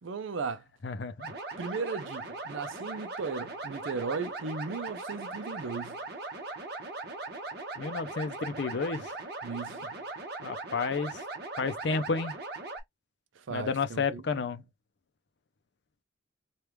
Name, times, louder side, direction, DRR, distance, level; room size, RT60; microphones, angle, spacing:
voice 1, 0.0-0.6 1.6-6.0 9.4-10.0 13.4-14.5, right 4 dB, 85° right, 0.5 m, -36 dB
voice 2, 0.8-1.3 7.8-9.2 10.4-11.2 11.6-12.3 13.5-14.6, left 4 dB, 60° left, 0.5 m, -31 dB
sound 1, 1.2-12.8, right 3 dB, 55° right, 1.0 m, -39 dB
3.3 x 2.4 x 3.0 m
head